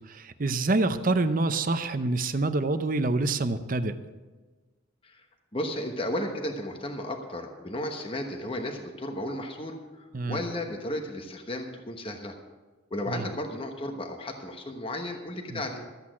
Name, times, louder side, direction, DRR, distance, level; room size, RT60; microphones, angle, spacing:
voice 1, 0.1-3.9 10.1-10.4 13.1-13.3 15.5-15.6, right 2 dB, 40° right, 11 dB, 0.7 m, -26 dB
voice 2, 5.5-12.4 12.9-15.8, left 1 dB, 25° left, 3 dB, 1.1 m, -34 dB
13.5 x 8.5 x 6.2 m, 1.3 s
head